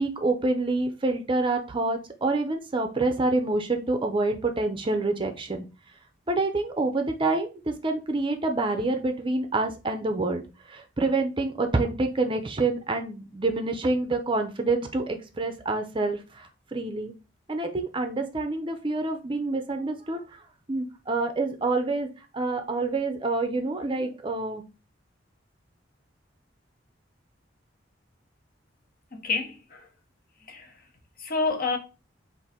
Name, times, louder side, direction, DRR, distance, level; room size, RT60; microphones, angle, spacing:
voice 1, 0.0-5.6 6.3-10.4 10.7-17.1 17.5-20.2 20.7-22.1 22.3-24.6, right 2 dB, 25° right, 0.5 m, -27 dB
voice 2, 29.1-29.9 30.5-30.7 31.2-31.8, left 4 dB, 50° left, 0.9 m, -28 dB
3.7 x 2.5 x 4.1 m
head